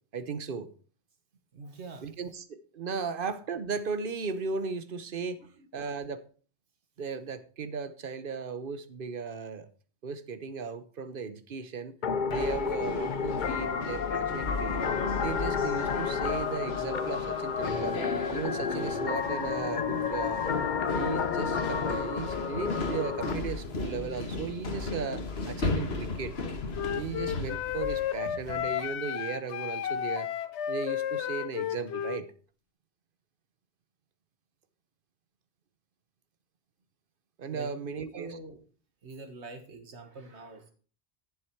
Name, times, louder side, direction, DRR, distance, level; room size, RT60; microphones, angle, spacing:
voice 1, 0.1-0.7 2.0-5.4 5.7-6.2 7.0-9.7 10.0-12.0 12.3-14.9 15.2-18.0 18.3-20.4 20.9-26.4 27.0-30.3 30.7-32.3 37.4-38.4, right 5 dB, 55° right, 12 dB, 1.0 m, -36 dB
voice 2, 1.5-2.1 5.6-5.8 37.5-38.6 39.0-40.7, right 3 dB, 80° right, 6 dB, 1.8 m, -45 dB
sound 1, 12.0-23.3, left 6 dB, 50° left, 0.9 m, -31 dB
sound 2, 12.3-28.8, left 3 dB, 70° left, 1.6 m, -36 dB
Wind instrument woodwind instrument, 26.7-32.2, left 9 dB, 85° left, 1.0 m, -32 dB
11.0 x 7.1 x 4.6 m, 0.40 s
omnidirectional pair, 1.1 m